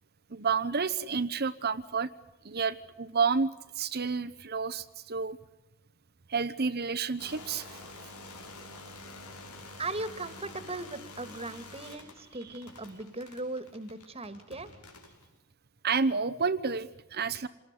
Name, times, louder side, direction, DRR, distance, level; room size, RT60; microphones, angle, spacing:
voice 1, 0.3-2.1 2.4-3.5 3.8-5.4 6.3-7.8 12.4-12.5 15.8-17.5, right 5 dB, 45° right, 9 dB, 1.0 m, -30 dB
sound 1, 7.2-15.3, left 2 dB, 90° left, 5.7 m, -48 dB
voice 2, 9.8-14.7, right 2 dB, 25° right, 13 dB, 2.0 m, -38 dB
27.5 x 19.5 x 9.7 m, 0.95 s
head